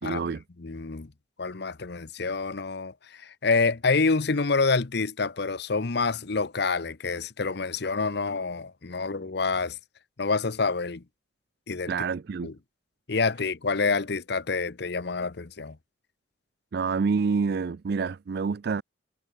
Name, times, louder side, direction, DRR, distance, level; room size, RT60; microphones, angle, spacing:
voice 1, 0.0-0.4 11.9-12.5 16.7-18.8, right 5 dB, 55° right, 0.4 m, -27 dB
voice 2, 0.6-1.1 1.4-9.8 10.2-11.0 11.7-11.9 12.4-12.5 13.1-15.8, left 4 dB, 60° left, 0.8 m, -27 dB
head